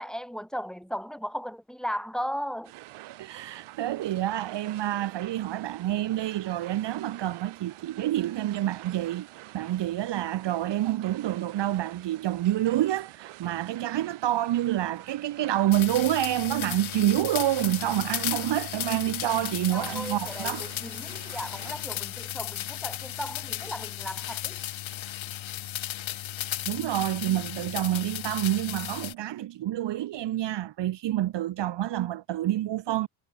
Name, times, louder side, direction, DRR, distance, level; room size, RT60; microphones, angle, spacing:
voice 1, 0.0-2.7 19.7-24.6, equal, ahead, 4.7 m, -36 dB
sound 1, 2.6-21.8, right 17 dB, 80° right, 4.7 m, -47 dB
voice 2, 3.1-9.3 9.5-20.7 26.7-33.1, right 13 dB, 60° right, 1.1 m, -28 dB
sound 2, 15.7-29.1, left 13 dB, 70° left, 4.6 m, -35 dB
supercardioid pair, 70°, 49 cm